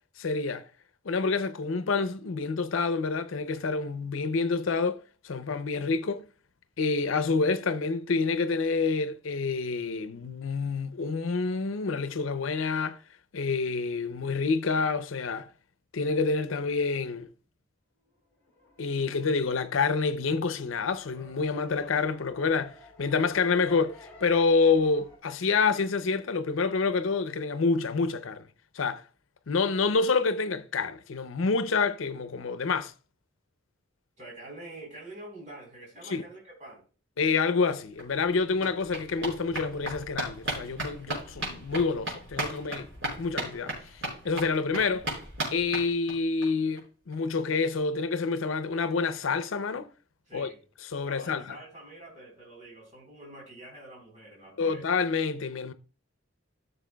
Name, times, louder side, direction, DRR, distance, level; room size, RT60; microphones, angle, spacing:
voice 1, 0.2-0.7 1.0-6.3 6.8-13.0 13.3-15.5 15.9-17.3 18.8-28.4 28.7-29.0 29.5-32.9 36.1-36.2 37.2-42.9 43.2-43.7 44.2-45.1 45.5-49.9 50.3-50.5 50.8-51.6 54.6-55.7, left 4 dB, 80° left, 0.6 m, -28 dB
sound 1, 18.1-25.2, left 1 dB, 10° left, 3.6 m, -53 dB
voice 2, 34.2-36.8 50.3-50.6 51.0-54.8, right 2 dB, 40° right, 3.8 m, -46 dB
sound 2, 37.7-37.8 38.0-46.5 46.8-46.9 47.1-47.2 47.5-47.6, right 1 dB, 65° right, 4.8 m, -36 dB
14.0 x 6.8 x 2.2 m
head